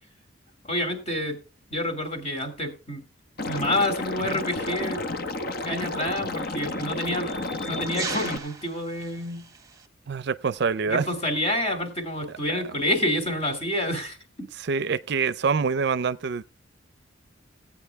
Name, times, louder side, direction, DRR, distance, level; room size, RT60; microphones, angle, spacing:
voice 1, 0.6-1.4 1.7-3.0 3.5-5.0 5.4-9.5 10.8-14.2, left 1 dB, 35° left, 2.6 m, -28 dB
Liquid, 3.4-8.4, left 2 dB, 55° left, 0.9 m, -31 dB
sound 1, 4.4-4.6 5.6-9.9, right 4 dB, 20° right, 1.2 m, -40 dB
voice 2, 10.1-11.1 14.7-16.4, right 5 dB, 60° right, 0.5 m, -25 dB
16.0 x 8.6 x 3.4 m
head